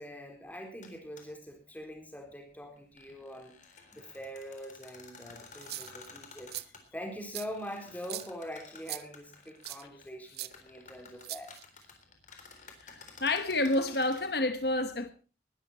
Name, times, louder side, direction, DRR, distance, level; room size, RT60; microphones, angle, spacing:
voice 1, 0.0-3.6 3.9-6.5 6.9-11.6, equal, 10° left, 4.0 m, -43 dB
sound 1, 0.8-0.9 1.2-1.3 2.8-6.8 7.5-10.1 10.3-14.2, left 5 dB, 45° left, 3.7 m, -53 dB
sound 2, 5.5-6.1 6.5-6.6 7.3-7.5 8.0-8.3 8.9-9.0 9.6-9.8 10.3-10.5 11.2-11.8, right 15 dB, 60° right, 0.8 m, -40 dB
voice 2, 12.8-15.1, left 2 dB, 65° left, 1.3 m, -29 dB
19.5 x 12.5 x 4.3 m
head